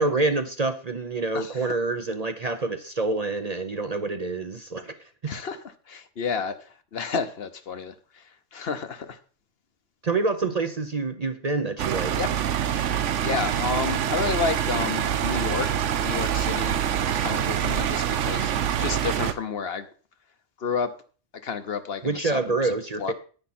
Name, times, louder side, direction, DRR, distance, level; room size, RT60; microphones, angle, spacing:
voice 1, 0.0-5.1 10.0-12.2 22.0-23.1, right 3 dB, 40° right, 8 dB, 0.7 m, -27 dB
voice 2, 1.3-1.7 5.3-5.6 5.9-6.5 6.9-8.2 8.5-9.2 12.2-12.3 12.7-12.9 13.2-15.7 16.0-16.8 17.2-18.5 18.8-19.9 20.6-20.9 21.4-22.4 23.0-23.1, left 5 dB, 60° left, 10 dB, 1.1 m, -30 dB
sound 1, 11.8-19.3, right 9 dB, 85° right, 1.1 m, -25 dB
10.0 x 9.6 x 4.3 m, 0.40 s
omnidirectional pair, 1.2 m